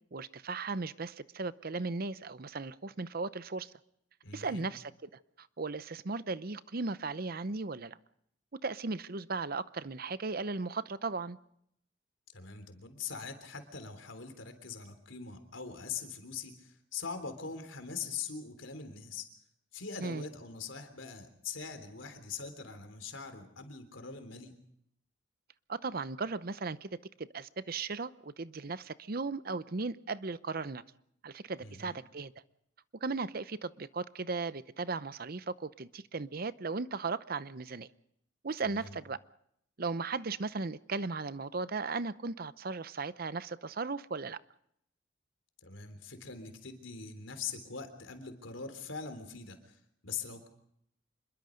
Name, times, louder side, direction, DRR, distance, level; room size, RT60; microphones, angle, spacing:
voice 1, 0.1-3.7 4.3-5.1 5.4-8.0 8.6-11.4 20.0-20.2 25.7-26.9 27.2-30.8 31.2-32.3 33.0-37.9 38.4-39.2 39.8-44.4, right 4 dB, 50° right, 15 dB, 0.7 m, -36 dB
voice 2, 4.2-4.7 12.3-19.3 19.7-24.5 31.6-32.0 38.6-39.0 45.6-49.8 50.0-50.5, left 5 dB, 90° left, 8 dB, 3.5 m, -42 dB
26.0 x 22.0 x 5.2 m, 0.73 s
head